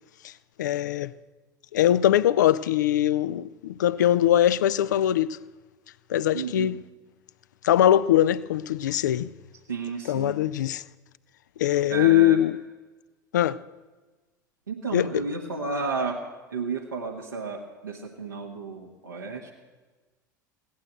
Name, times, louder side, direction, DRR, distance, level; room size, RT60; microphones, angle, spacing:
voice 1, 0.6-1.1 1.7-5.4 6.1-6.8 7.6-9.3 10.1-10.8 11.6-12.6 13.3-13.6 14.9-15.2, left 12 dB, 65° left, 0.5 m, -22 dB
voice 2, 6.3-6.7 9.7-10.3 11.9-12.4 14.7-16.2 16.5-19.5, right 4 dB, 80° right, 1.4 m, -32 dB
16.5 x 11.5 x 7.7 m
figure-of-eight pair, 75°, 10 cm